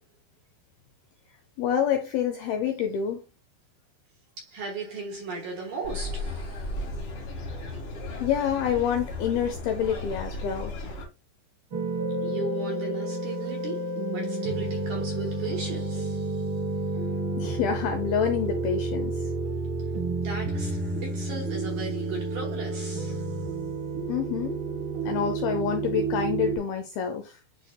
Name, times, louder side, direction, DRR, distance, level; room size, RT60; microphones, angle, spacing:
voice 1, 1.6-3.2 8.2-10.7 17.4-19.3 24.1-24.6 25.1-27.4, left 8 dB, 80° left, 2.2 m, -27 dB
voice 2, 4.4-7.0 12.2-16.6 20.2-23.5, right 3 dB, 60° right, 2.2 m, -37 dB
sound 1, 5.8-11.0, left 2 dB, 45° left, 1.9 m, -35 dB
sound 2, 11.7-26.6, right 3 dB, 85° right, 1.1 m, -30 dB
11.5 x 3.9 x 2.3 m
omnidirectional pair, 5.3 m